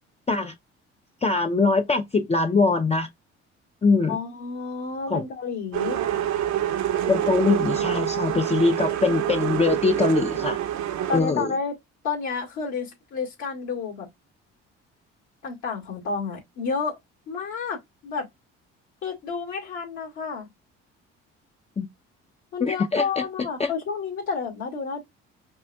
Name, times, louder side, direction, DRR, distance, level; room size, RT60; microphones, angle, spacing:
voice 1, 1.2-3.1 3.8-4.2 5.1-5.2 7.1-10.6 11.1-11.5 21.8-21.9 22.6-23.2 23.6-23.7, left 4 dB, 20° left, 0.6 m, -22 dB
voice 2, 4.1-6.1 11.1-11.8 12.0-14.1 15.4-17.0 17.3-18.3 19.0-20.5 22.5-25.0, left 5 dB, 65° left, 2.1 m, -30 dB
sound 1, 5.7-11.2, right 11 dB, 70° right, 0.9 m, -26 dB
5.3 x 2.5 x 2.2 m
supercardioid pair, 65°, 31 cm